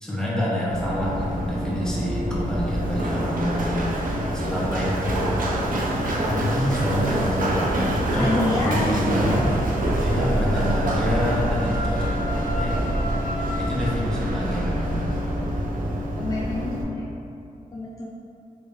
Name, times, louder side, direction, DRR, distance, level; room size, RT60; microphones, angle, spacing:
voice 1, 0.0-3.9 4.3-5.5 6.1-7.7 8.1-9.5 10.0-12.3 12.6-12.8 13.6-15.2, equal, 5° left, -6 dB, 0.8 m, -27 dB
Run, 0.7-16.8, right 1 dB, 65° right, 0.5 m, -25 dB
voice 2, 8.2-8.8 16.2-17.1 17.7-18.1, left 2 dB, 25° left, -5 dB, 0.3 m, -27 dB
Wind instrument woodwind instrument, 9.3-14.0, equal, 65° left, 0.7 m, -35 dB
3.3 x 3.2 x 2.6 m, 2.6 s
wide cardioid pair, 110°, 15 cm